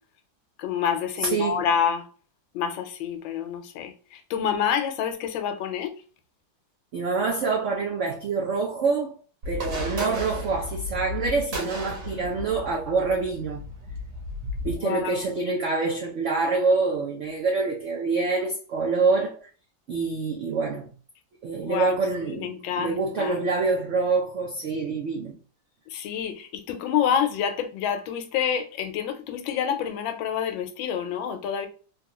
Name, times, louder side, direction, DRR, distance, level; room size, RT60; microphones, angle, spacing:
voice 1, 0.6-2.1 2.5-3.9 4.3-5.9 14.8-15.2 21.6-22.0 22.3-23.3 25.9-31.7, left 8 dB, 90° left, 1.4 m, -27 dB
voice 2, 1.2-1.6 6.9-9.2 9.5-13.6 14.6-19.4 19.9-20.9 21.4-25.3, right 4 dB, 85° right, 0.6 m, -26 dB
sound 1, 9.4-14.8, left 1 dB, 60° right, 1.5 m, -34 dB
3.4 x 2.3 x 2.9 m
omnidirectional pair, 2.1 m